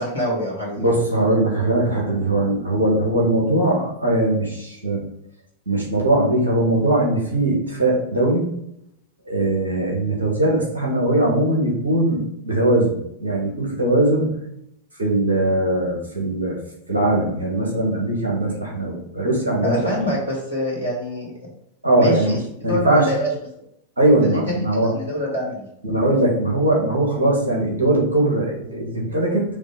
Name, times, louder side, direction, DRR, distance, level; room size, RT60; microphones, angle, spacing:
voice 1, 0.0-0.8 19.6-21.3 22.0-22.4 22.7-23.3 24.2-24.6 24.9-25.7, left 1 dB, 85° left, -4 dB, 2.7 m, -24 dB
voice 2, 0.8-5.0 5.7-8.5 9.3-14.3 15.0-16.6 16.9-20.0 21.8-22.4 22.6-23.2 24.0-24.9 25.8-29.4, right 1 dB, 75° right, -2 dB, 2.1 m, -20 dB
6.6 x 3.2 x 5.1 m, 0.77 s
figure-of-eight pair, 90°, 0 cm